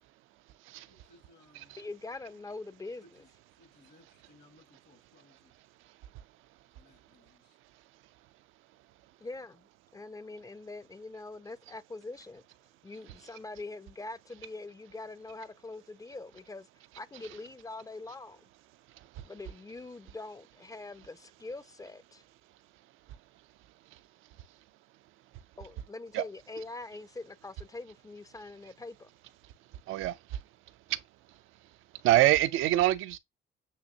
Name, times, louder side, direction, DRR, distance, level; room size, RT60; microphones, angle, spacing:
voice 1, 0.9-1.8 3.0-3.3 3.6-5.5 6.7-7.6 13.0-13.1, left 2 dB, 65° left, 1.5 m, -62 dB
voice 2, 1.8-3.2 9.2-12.4 12.8-16.7 17.0-18.4 19.2-22.2 25.6-29.1, left 3 dB, 15° left, 0.4 m, -43 dB
voice 3, 29.9-30.4 30.9-31.0 32.0-33.2, right 15 dB, 90° right, 0.4 m, -26 dB
6.7 x 2.9 x 2.7 m
cardioid pair, 90°, 20 cm